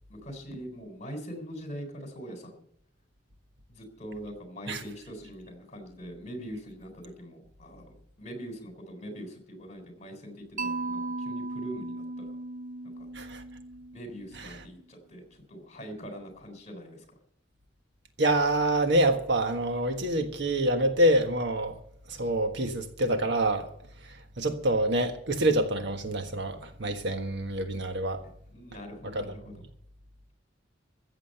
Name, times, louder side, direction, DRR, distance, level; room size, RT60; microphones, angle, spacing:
voice 1, 0.1-2.6 3.7-12.4 12.8-13.1 13.9-17.1 28.5-29.6, equal, 40° left, 3.8 m, -43 dB
Mallet percussion, 10.6-14.6, right 2 dB, 45° right, 0.5 m, -37 dB
voice 2, 18.2-21.8 22.1-23.7 24.0-28.2 29.1-29.2, right 1 dB, 65° right, 1.5 m, -26 dB
14.5 x 7.6 x 7.9 m
head